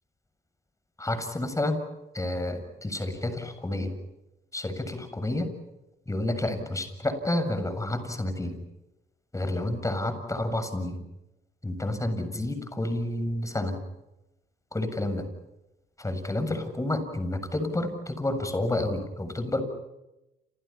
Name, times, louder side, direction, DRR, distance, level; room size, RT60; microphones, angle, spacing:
voice 1, 1.0-1.9 2.1-3.9 4.5-5.5 6.1-8.6 9.3-11.0 11.6-13.8 14.7-15.2 16.0-19.6, left 1 dB, 15° left, 9 dB, 7.4 m, -30 dB
30.0 x 29.0 x 5.9 m, 0.94 s
cardioid pair, 90°, 20 cm